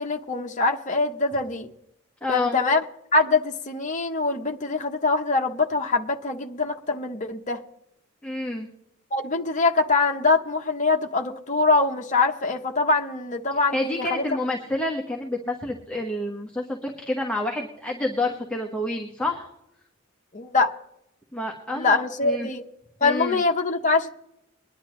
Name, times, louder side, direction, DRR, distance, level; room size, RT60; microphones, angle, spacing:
voice 1, 0.0-1.7 2.3-2.8 3.1-7.6 9.1-14.2 20.3-20.7 21.7-22.6 23.0-24.1, left 3 dB, 40° left, 1.0 m, -23 dB
voice 2, 2.2-2.6 8.2-8.7 13.7-19.5 21.3-21.9 22.2-22.5 23.0-23.4, left 2 dB, 5° left, 1.3 m, -28 dB
22.5 x 11.0 x 3.2 m
head